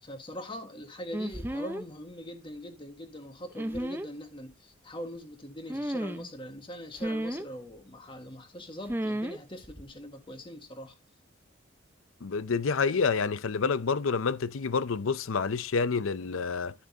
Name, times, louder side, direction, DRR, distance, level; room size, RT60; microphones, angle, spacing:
voice 1, 0.0-11.0, equal, 25° left, 1.6 m, -42 dB
sound 1, 1.1-1.9 3.5-4.1 5.7-6.3 7.0-7.5 8.9-9.4 9.6-9.9, right 1 dB, 10° right, 0.6 m, -33 dB
voice 2, 12.2-16.7, left 5 dB, 85° left, 0.6 m, -28 dB
12.5 x 6.3 x 2.8 m
head